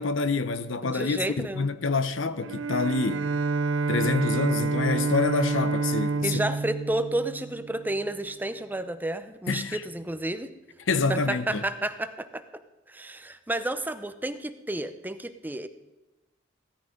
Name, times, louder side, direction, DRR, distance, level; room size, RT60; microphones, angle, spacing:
voice 1, 0.0-3.3 3.9-6.4 9.5-9.8 10.9-11.6, left 4 dB, 70° left, 0.8 m, -27 dB
voice 2, 0.8-1.6 6.2-10.5 11.1-12.4 12.9-15.7, right 1 dB, 10° right, 0.6 m, -31 dB
Bowed string instrument, 2.4-7.9, right 3 dB, 70° right, 0.5 m, -28 dB
16.5 x 13.0 x 5.2 m
head